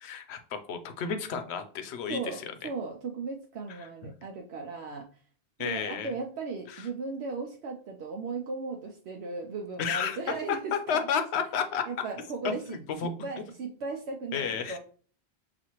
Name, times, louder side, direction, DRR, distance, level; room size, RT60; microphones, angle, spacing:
voice 1, 0.0-2.5 3.8-4.1 5.6-6.1 6.7-6.9 9.8-10.2 10.5-11.9 12.4-13.1 14.3-14.8, left 7 dB, 75° left, 8 dB, 0.8 m, -32 dB
voice 2, 2.1-5.1 5.6-11.0 11.9-12.8 13.2-14.8, right 4 dB, 75° right, 1 dB, 0.8 m, -36 dB
5.9 x 2.5 x 2.9 m, 0.43 s
omnidirectional pair, 1.1 m